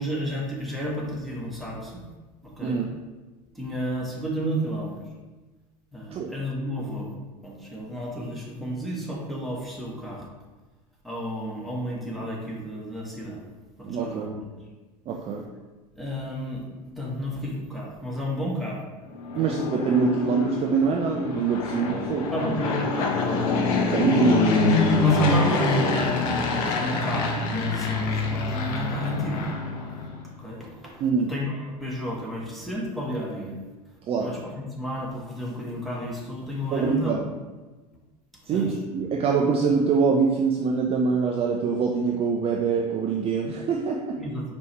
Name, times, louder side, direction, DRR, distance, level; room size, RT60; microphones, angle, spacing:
voice 1, 0.0-2.0 2.4-2.8 3.5-4.9 5.9-7.1 7.4-10.3 11.0-13.4 13.8-14.4 16.0-16.6 17.0-18.8 19.3-19.5 22.3-23.6 25.0-29.4 30.2-31.0 31.3-33.6 34.2-37.1 38.5-38.7 44.2-44.5, equal, ahead, -4 dB, 1.1 m, -32 dB
voice 2, 13.8-14.3 15.1-15.4 19.4-22.3 23.9-24.5 31.0-31.3 34.1-34.3 36.7-37.3 38.5-44.2, right 5 dB, 30° right, 0 dB, 0.4 m, -24 dB
Fixed-wing aircraft airplane, 19.1-30.2, left 3 dB, 55° left, 0.7 m, -25 dB
4.5 x 3.1 x 3.2 m, 1.2 s
figure-of-eight pair, 75°, 21 cm